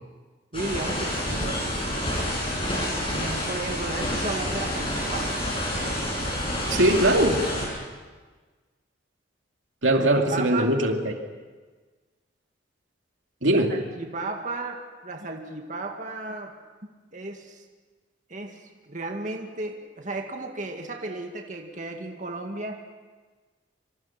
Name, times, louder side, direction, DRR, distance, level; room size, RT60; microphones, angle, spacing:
sound 1, 0.5-7.7, equal, 30° left, 7.7 m, -28 dB
voice 1, 0.5-1.6 3.1-5.4 9.9-10.7 13.5-16.6 17.1-17.6 18.3-22.8, right 2 dB, 40° right, 3 dB, 2.0 m, -34 dB
voice 2, 6.7-7.4 9.8-11.2 13.4-13.8, right 1 dB, 85° right, 3 dB, 2.6 m, -21 dB
26.5 x 26.0 x 6.0 m, 1.4 s
head